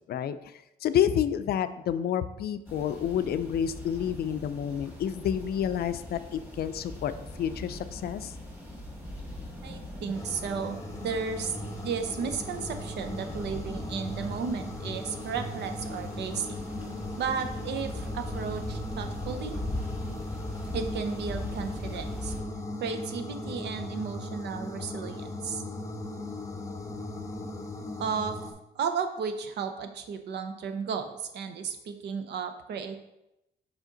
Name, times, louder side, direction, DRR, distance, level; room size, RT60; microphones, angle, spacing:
voice 1, 0.8-7.1 7.4-8.3, left 9 dB, 65° left, 12 dB, 0.4 m, -29 dB
sound 1, 2.7-22.4, left 1 dB, 10° right, 1.9 m, -41 dB
voice 2, 9.6-11.5 11.8-16.5 17.2-19.6 20.7-22.3 22.8-25.6 28.0-28.4 28.7-33.0, right 6 dB, 75° right, 7 dB, 0.7 m, -34 dB
sound 2, 10.1-28.5, left 1 dB, 15° left, 0.7 m, -38 dB
5.1 x 4.9 x 3.9 m, 0.88 s
cardioid pair, 105°, 18 cm